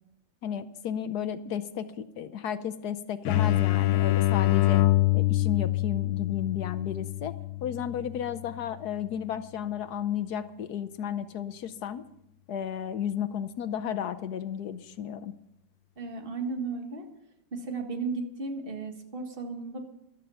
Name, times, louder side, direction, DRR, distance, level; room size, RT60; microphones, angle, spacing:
voice 1, 0.4-4.8 5.1-7.3 7.6-12.1 12.5-15.3, left 9 dB, 65° left, 12 dB, 1.2 m, -33 dB
sound 1, 3.3-8.8, left 17 dB, 85° left, 1.5 m, -25 dB
voice 2, 16.0-17.1 17.5-19.8, right 4 dB, 30° right, 4 dB, 1.8 m, -34 dB
12.5 x 12.5 x 5.6 m, 0.81 s
omnidirectional pair, 2.0 m